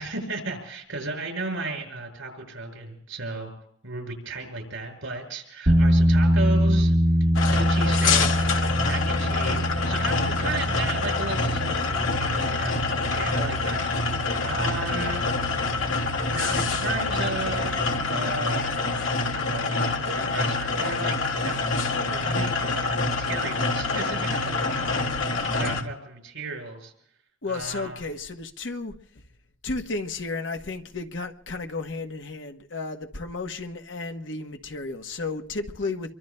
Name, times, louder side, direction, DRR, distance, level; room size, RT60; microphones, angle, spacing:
voice 1, 0.0-3.5 3.8-6.9 7.5-8.3 8.8-15.3 16.3-18.9 19.3-21.2 21.4-21.6 22.1-26.9 27.5-28.0, right 3 dB, 85° right, 2 dB, 5.8 m, -35 dB
sound 1, 5.7-18.0, equal, 50° right, 1.2 m, -25 dB
sound 2, 7.3-25.8, left 3 dB, 90° left, 1.9 m, -26 dB
voice 2, 27.4-28.9 29.6-36.1, left 3 dB, 70° left, 5 dB, 1.0 m, -33 dB
27.5 x 23.5 x 2.2 m, 0.69 s
head